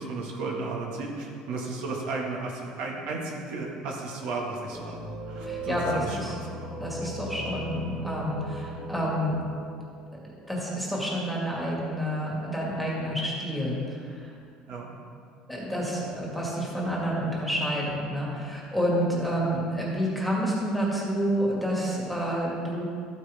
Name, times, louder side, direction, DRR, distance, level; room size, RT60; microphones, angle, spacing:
voice 1, 0.0-5.0 5.3-6.7 14.7-14.9 19.2-19.3, right 3 dB, 65° right, -2 dB, 1.9 m, -34 dB
sound 1, 4.7-10.9, right 1 dB, 15° right, 1.1 m, -38 dB
voice 2, 5.5-6.3 6.8-9.4 10.5-14.3 15.5-22.8, equal, ahead, -5 dB, 2.0 m, -29 dB
13.5 x 9.2 x 3.6 m, 2.3 s
cardioid pair, 165°, 2 cm